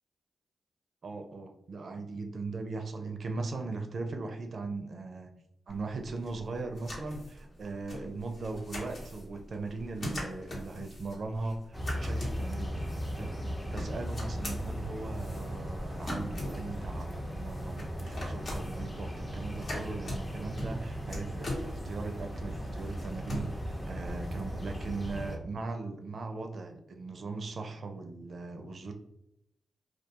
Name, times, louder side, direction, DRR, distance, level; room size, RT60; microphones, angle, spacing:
voice 1, 1.0-5.3 5.7-28.9, right 3 dB, 65° right, 5 dB, 0.4 m, -39 dB
sound 1, 5.7-25.3, left 1 dB, 65° left, 0.9 m, -43 dB
sound 2, 11.7-25.4, equal, 20° left, 0.6 m, -37 dB
2.3 x 2.3 x 2.7 m, 0.80 s
cardioid pair, 55°, 0 cm